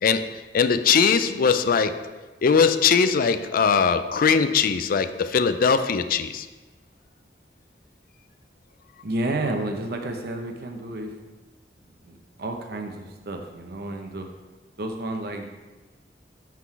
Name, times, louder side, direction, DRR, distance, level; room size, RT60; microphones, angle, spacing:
voice 1, 0.0-2.1 2.4-6.5, left 6 dB, 55° left, 11 dB, 0.4 m, -21 dB
voice 2, 9.0-11.1 11.9-14.3 14.8-15.5, right 1 dB, 60° right, 4 dB, 0.9 m, -31 dB
6.0 x 5.8 x 4.6 m, 1.2 s
head